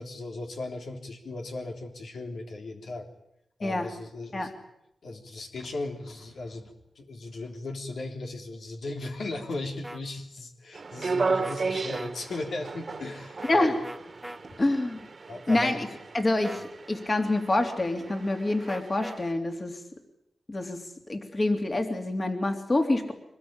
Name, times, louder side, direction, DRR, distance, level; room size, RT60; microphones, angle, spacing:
voice 1, 0.0-3.1 3.6-4.5 5.0-13.7 14.5-14.6 15.3-15.7, left 2 dB, 80° left, 2 dB, 3.5 m, -37 dB
sound 1, 9.8-10.0 11.4-11.6 11.9-12.1 13.4-13.6 13.8-14.4 15.5-15.8 16.4-16.7 18.7-19.2, right 1 dB, 5° right, 1.8 m, -40 dB
sound 2, 10.7-19.3, right 4 dB, 50° right, 1.7 m, -35 dB
voice 2, 14.6-15.0 15.5-15.9 16.1-19.8 20.5-23.1, left 2 dB, 35° left, 5 dB, 3.2 m, -27 dB
24.5 x 20.0 x 8.9 m, 0.80 s
wide cardioid pair, 85°, 0 cm